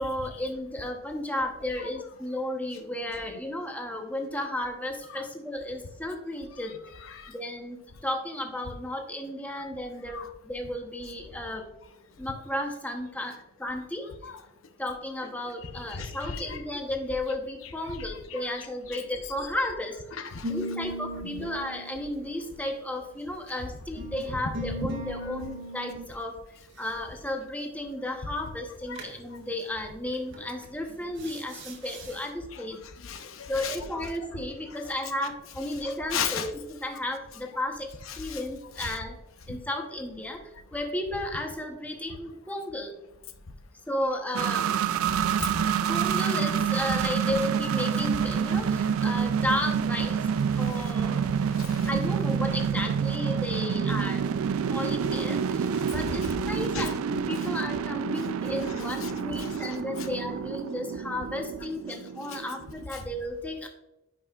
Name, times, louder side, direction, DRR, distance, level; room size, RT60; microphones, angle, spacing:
voice 1, 0.0-6.7 7.3-11.7 12.2-14.1 14.8-20.0 20.5-26.4 26.8-32.8 33.5-37.9 38.2-39.2 39.5-42.9 43.9-44.7 45.9-50.3 50.6-51.3 51.9-54.3 54.6-63.7, left 1 dB, 5° left, 2 dB, 0.9 m, -33 dB
voice 2, 7.0-7.3 9.5-9.7 10.1-10.3 14.2-14.4 15.6-16.6 17.6-18.0 18.3-19.0 20.1-20.5 21.3-21.5 24.8-24.9 25.2-25.3 28.9-29.0 29.3-29.4 32.5-34.1 35.8-36.5 38.1-38.4 38.8-39.0 39.5-39.6 45.2-45.7 50.5-51.9 55.7-56.3 56.7-56.9 59.0-60.1 62.3-62.4 62.9-63.1, left 6 dB, 70° left, 7 dB, 0.7 m, -37 dB
sound 1, 20.4-23.3 24.0-26.0 29.0-29.2 30.3-30.6 31.2-32.2, right 1 dB, 65° right, 1.5 m, -38 dB
sound 2, 44.3-62.8, right 7 dB, 80° right, 0.4 m, -28 dB
9.5 x 5.5 x 2.4 m, 0.91 s
head